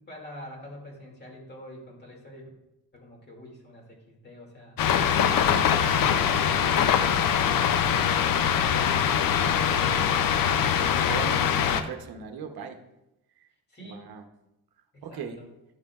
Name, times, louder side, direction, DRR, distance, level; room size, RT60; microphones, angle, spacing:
voice 1, 0.0-2.5 2.9-4.8 13.7-14.1 14.9-15.4, left 1 dB, 25° left, 0 dB, 2.2 m, -45 dB
sound 1, 4.8-11.8, left 8 dB, 65° left, 0.6 m, -23 dB
voice 2, 5.2-5.8 9.9-10.1 10.8-12.8 13.4-13.5 13.8-14.2 15.0-15.4, right 6 dB, 75° right, 5 dB, 0.8 m, -38 dB
10.0 x 7.3 x 2.3 m, 0.91 s
cardioid pair, 120°, 37 cm